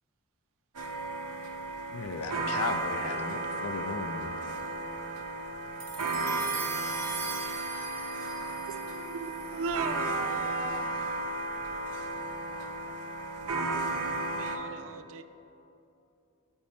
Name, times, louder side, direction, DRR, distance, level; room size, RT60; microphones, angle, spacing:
sound 1, 0.7-14.6, right 2 dB, 85° right, 0.8 m, -34 dB
voice 1, 1.9-4.3, left 5 dB, 75° left, 8 dB, 0.5 m, -36 dB
sound 2, 5.8-10.3, right 4 dB, 45° right, 1.1 m, -41 dB
voice 2, 8.7-11.1 14.3-15.2, right 5 dB, 65° right, 10 dB, 0.4 m, -38 dB
voice 3, 12.5-13.0 14.0-14.8, left 1 dB, 10° left, 4 dB, 0.6 m, -59 dB
12.0 x 4.4 x 4.2 m, 2.8 s
head